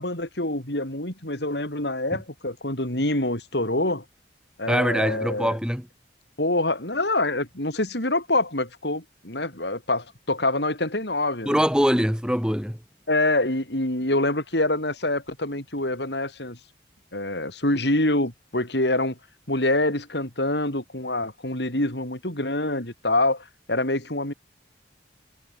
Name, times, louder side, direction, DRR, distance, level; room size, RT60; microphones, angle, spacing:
voice 1, 0.0-4.0 4.6-5.5 6.4-11.6 13.1-16.6 17.1-19.2 19.5-24.3, left 2 dB, 65° left, 6.3 m, -26 dB
voice 2, 4.7-5.9 11.4-12.8, equal, 5° right, 5.1 m, -23 dB
head